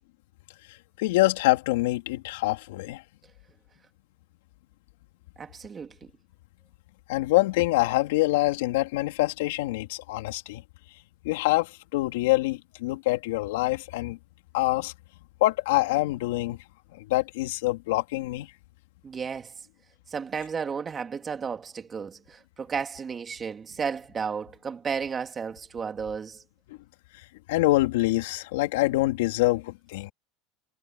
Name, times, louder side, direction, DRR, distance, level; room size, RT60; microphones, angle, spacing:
voice 1, 1.0-3.0 7.1-10.6 11.2-14.2 14.5-14.9 15.4-16.6 16.9-18.5 26.7-26.8 27.5-30.1, left 19 dB, 85° left, 3.7 m, -25 dB
voice 2, 5.4-6.1 19.0-19.5 20.1-26.4, right 6 dB, 25° right, 3.2 m, -33 dB
supercardioid pair, 125°, 0 cm